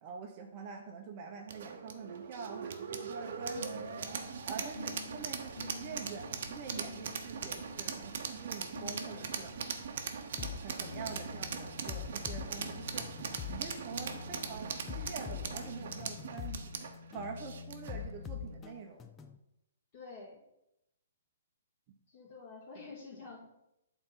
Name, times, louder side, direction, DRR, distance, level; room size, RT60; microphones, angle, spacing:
voice 1, 0.0-3.9 4.5-9.5 10.6-13.1 13.5-16.7 17.1-19.0 22.8-22.9, right 5 dB, 30° right, 3 dB, 0.9 m, -45 dB
sound 1, 1.5-18.0, right 6 dB, 55° right, 0.9 m, -40 dB
sound 2, 3.3-10.0 10.8-18.8, left 4 dB, 75° left, 0.9 m, -50 dB
sound 3, 10.4-10.6 11.1-11.3 11.9-13.6 14.1-14.3 14.9-16.6 17.1-17.3 17.9-19.4, left 9 dB, 15° left, 0.4 m, -43 dB
voice 2, 19.9-20.4 22.1-23.5, left 4 dB, 35° left, -1 dB, 2.2 m, -48 dB
7.8 x 4.1 x 5.5 m, 0.85 s
hypercardioid pair, 160°, 0 cm